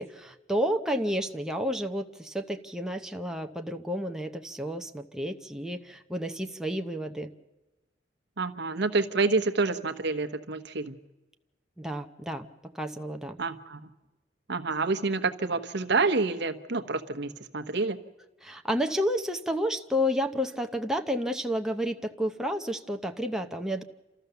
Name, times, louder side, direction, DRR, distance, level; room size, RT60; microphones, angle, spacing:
voice 1, 0.0-7.3 11.8-12.5 12.7-13.4 18.4-23.8, equal, 5° right, 4 dB, 0.8 m, -31 dB
voice 2, 8.4-11.0 13.4-13.8 14.5-18.0, right 3 dB, 65° right, 9 dB, 1.1 m, -28 dB
29.0 x 13.5 x 6.9 m, 1.1 s
head